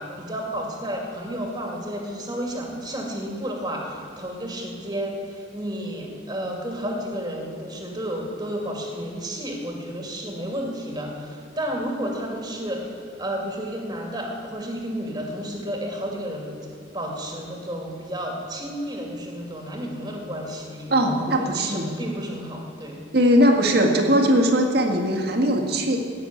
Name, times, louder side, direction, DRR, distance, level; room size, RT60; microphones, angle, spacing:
voice 1, 0.0-12.9 13.2-16.5 16.9-23.0, equal, 20° right, 1 dB, 2.2 m, -31 dB
voice 2, 20.9-22.0 23.1-26.0, equal, 55° right, 2 dB, 1.8 m, -20 dB
17.0 x 6.8 x 8.6 m, 2.6 s
head